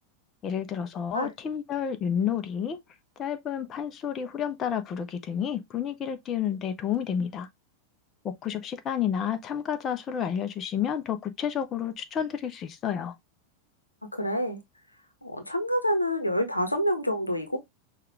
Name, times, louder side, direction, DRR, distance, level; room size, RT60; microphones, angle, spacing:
voice 1, 0.4-2.8 3.2-7.5 8.2-13.1, left 8 dB, 30° left, 0.6 m, -30 dB
voice 2, 14.1-14.6 15.2-17.6, equal, 85° left, 0.9 m, -27 dB
5.7 x 2.4 x 3.1 m
figure-of-eight pair, 90°, 0 cm